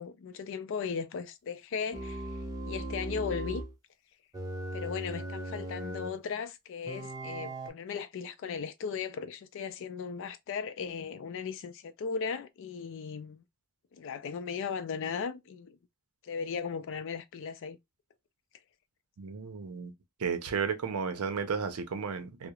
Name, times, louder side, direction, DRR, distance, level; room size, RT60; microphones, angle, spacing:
voice 1, 0.0-2.3 2.7-3.6 4.7-13.4 13.9-15.8 16.2-17.8, left 6 dB, 60° left, 0.3 m, -37 dB
sound 1, 1.9-3.7 4.3-6.2 6.9-7.7, right 1 dB, 15° right, 0.4 m, -38 dB
voice 2, 19.2-19.9 20.2-22.5, right 6 dB, 80° right, 0.5 m, -33 dB
2.3 x 2.0 x 2.8 m
head